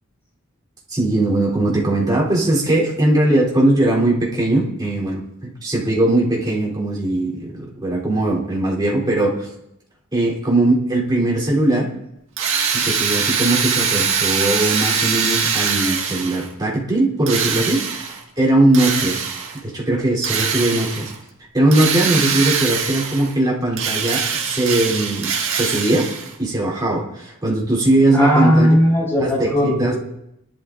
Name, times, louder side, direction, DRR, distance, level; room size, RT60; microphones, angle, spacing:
voice 1, 0.9-9.5 10.1-11.9 12.7-19.2 19.5-21.1 21.5-26.1 26.4-28.7 29.2-29.5 29.8-29.9, right 1 dB, 20° right, -5 dB, 3.5 m, -19 dB
Drill, 12.4-16.5 17.3-18.2 18.7-19.6 20.2-21.1 21.7-23.3 23.7-26.3, right 6 dB, 60° right, 1.9 m, -22 dB
voice 2, 28.1-30.0, equal, 10° left, -3 dB, 5.0 m, -17 dB
19.5 x 11.5 x 2.6 m, 0.82 s
head